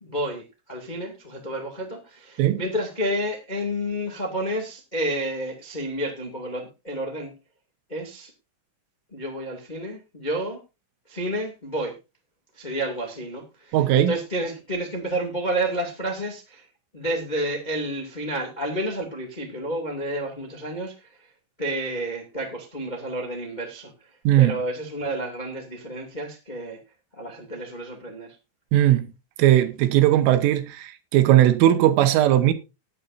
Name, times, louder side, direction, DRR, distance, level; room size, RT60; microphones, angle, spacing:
voice 1, 0.0-7.3 7.9-8.3 9.1-10.6 11.1-11.9 12.5-16.6 16.9-21.3 21.6-23.9 24.4-26.8 27.2-28.3, right 1 dB, 30° left, 0.8 m, -30 dB
voice 2, 13.7-14.1 24.3-24.6 28.7-29.1 29.4-32.5, right 13 dB, 90° right, 3.8 m, -18 dB
19.5 x 8.5 x 2.7 m
omnidirectional pair, 5.6 m